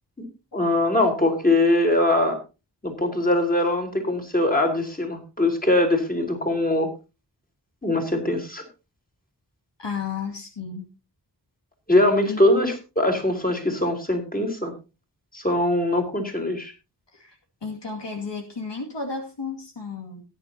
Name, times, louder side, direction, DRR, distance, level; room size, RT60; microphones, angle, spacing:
voice 1, 0.5-2.4 2.8-6.9 7.8-8.6 11.9-14.7 15.3-16.7, left 1 dB, 20° left, 3 dB, 4.0 m, -22 dB
voice 2, 9.8-10.9 12.2-12.4 17.1-20.2, left 5 dB, 75° left, 1 dB, 2.5 m, -33 dB
18.5 x 9.7 x 2.8 m, 0.29 s
wide cardioid pair, 60°, 43 cm